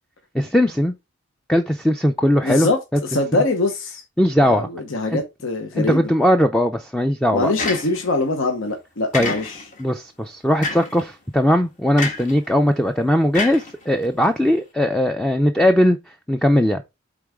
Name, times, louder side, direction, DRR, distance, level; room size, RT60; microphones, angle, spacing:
voice 1, 0.3-0.9 1.5-3.0 4.2-4.7 5.1-5.2 5.8-7.5 9.1-9.3 9.8-16.9, equal, 5° left, 0.4 m, -19 dB
voice 2, 2.4-4.0 4.4-6.1 7.3-9.6, left 2 dB, 75° left, 0.9 m, -23 dB
sound 1, 7.6-8.2 9.1-9.8 10.6-11.0 12.0-12.4 13.3-14.2, left 3 dB, 40° left, 1.5 m, -28 dB
8.5 x 3.9 x 3.5 m
head